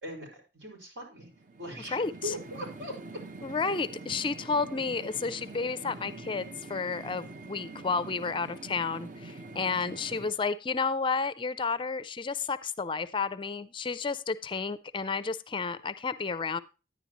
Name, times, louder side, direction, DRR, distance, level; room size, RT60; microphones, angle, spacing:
voice 1, 0.0-1.3 1.6-3.2, equal, 75° right, -1 dB, 5.0 m, -40 dB
sound 1, 1.2-10.3, right 3 dB, 45° right, 0.7 m, -45 dB
voice 2, 1.9-2.3 3.4-16.6, left 4 dB, 25° left, 13 dB, 0.4 m, -31 dB
10.5 x 9.8 x 2.9 m, 0.31 s
head